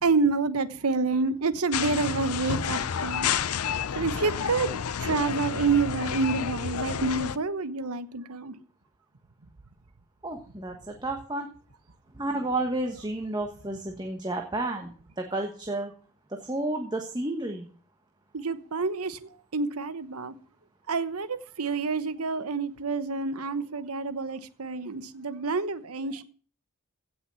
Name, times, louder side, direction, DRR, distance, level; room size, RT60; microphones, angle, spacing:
voice 1, 0.0-3.3 4.0-8.5 18.3-20.3 20.9-26.2, right 4 dB, 85° right, 1.1 m, -28 dB
sound 1, 1.7-7.4, left 7 dB, 85° left, 0.6 m, -30 dB
voice 2, 10.2-11.5 12.2-15.9 16.3-17.7, right 2 dB, 20° right, 1.2 m, -31 dB
16.5 x 6.2 x 7.0 m
head